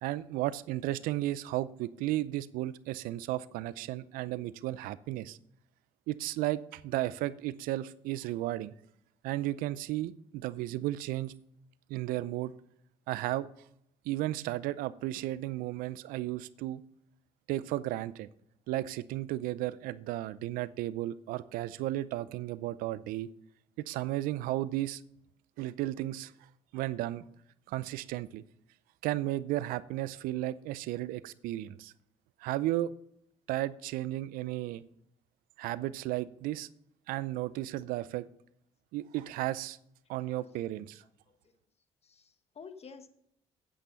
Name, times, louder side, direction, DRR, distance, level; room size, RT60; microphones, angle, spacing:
voice 1, 0.0-5.4 6.1-8.7 9.2-11.3 11.9-12.5 13.1-13.5 14.1-16.8 17.5-18.3 18.7-23.3 23.8-25.0 25.6-26.3 26.7-27.2 27.7-28.4 29.0-31.9 32.4-32.9 33.5-34.8 35.6-36.7 37.1-38.3 38.9-39.8 40.1-41.0, right 15 dB, 80° right, 18 dB, 0.5 m, -34 dB
voice 2, 42.0-43.1, left 5 dB, 45° left, 9 dB, 1.4 m, -50 dB
8.8 x 8.7 x 5.3 m, 0.72 s
supercardioid pair, 55°, 14 cm